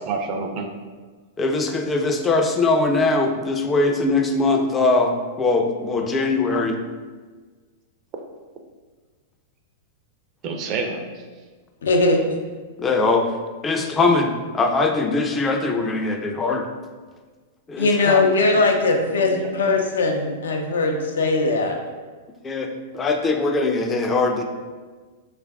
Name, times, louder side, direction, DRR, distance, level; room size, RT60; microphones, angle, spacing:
voice 1, 0.1-0.7 10.4-11.2 18.5-18.6 19.1-19.8, right 4 dB, 40° right, 4 dB, 0.5 m, -29 dB
voice 2, 1.4-6.8 12.8-13.3 13.6-16.7 17.7-18.2 22.4-24.4, left 3 dB, 20° left, 3 dB, 0.4 m, -21 dB
voice 3, 11.8-12.2 17.8-21.8, left 3 dB, 80° left, 3 dB, 0.5 m, -20 dB
3.3 x 2.4 x 3.4 m, 1.4 s
hypercardioid pair, 110°, 0 cm